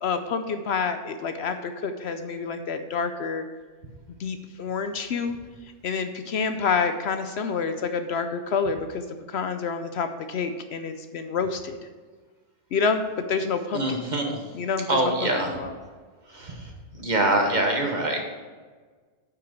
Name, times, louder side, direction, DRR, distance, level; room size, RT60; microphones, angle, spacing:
voice 1, 0.0-3.5 4.2-5.4 5.8-11.8 12.7-13.0 13.3-14.0 14.5-15.7, left 5 dB, 65° left, 8 dB, 0.8 m, -28 dB
voice 2, 13.7-14.4 14.9-15.6 17.0-18.2, right 1 dB, 40° right, 2 dB, 1.3 m, -24 dB
8.8 x 5.9 x 6.1 m, 1.5 s
omnidirectional pair, 1.3 m